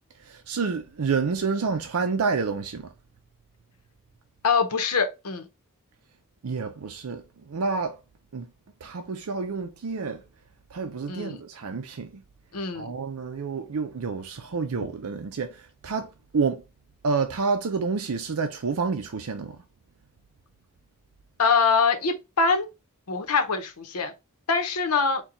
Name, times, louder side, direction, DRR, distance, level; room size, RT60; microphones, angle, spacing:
voice 1, 0.3-2.8 6.4-7.2 7.5-7.9 8.3-8.5 8.8-10.2 10.7-12.1 12.7-15.5 15.8-16.1 16.3-16.6 17.0-19.6, right 4 dB, 75° right, 0.5 m, -28 dB
voice 2, 4.4-5.5 11.1-11.4 12.5-12.9 21.4-22.7 23.1-24.1 24.5-25.2, left 5 dB, 90° left, 0.9 m, -24 dB
4.4 x 2.3 x 3.8 m
head